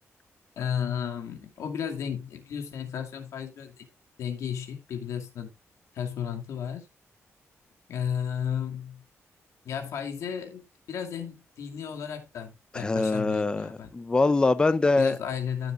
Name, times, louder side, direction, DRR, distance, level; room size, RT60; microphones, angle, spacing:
voice 1, 0.6-3.9 4.2-5.5 5.9-6.9 7.9-9.0 9.6-13.9 15.0-15.7, left 8 dB, 90° left, 2.4 m, -33 dB
voice 2, 12.7-15.2, left 3 dB, 15° left, 0.6 m, -23 dB
14.5 x 7.0 x 2.5 m
wide cardioid pair, 165°, 5 cm